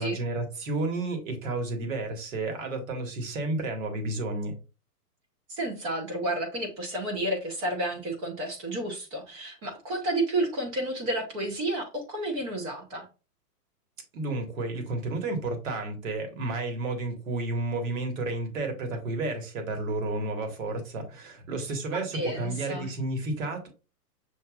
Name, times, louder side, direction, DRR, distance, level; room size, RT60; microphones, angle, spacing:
voice 1, 0.0-4.5 14.1-23.7, right 2 dB, 55° right, 1.6 m, -31 dB
voice 2, 5.5-13.0 21.9-22.9, right 1 dB, 25° right, 0.8 m, -31 dB
6.7 x 2.5 x 2.4 m
hypercardioid pair, 145°, 48 cm